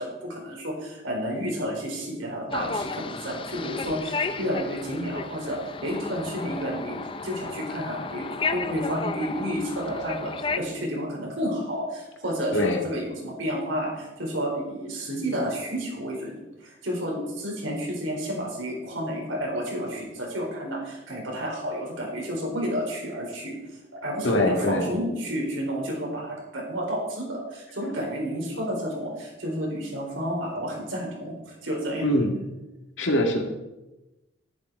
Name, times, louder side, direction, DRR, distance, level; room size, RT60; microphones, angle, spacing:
voice 1, 0.0-7.0 7.2-23.5 23.9-32.0 32.3-32.4, equal, 85° right, -1 dB, 4.1 m, -31 dB
sound 1, 2.5-10.6, left 4 dB, 25° left, 0.5 m, -33 dB
voice 2, 24.2-24.9 32.0-32.3 33.0-33.4, left 1 dB, 75° left, 2 dB, 2.0 m, -23 dB
11.0 x 10.5 x 4.6 m, 1.0 s
head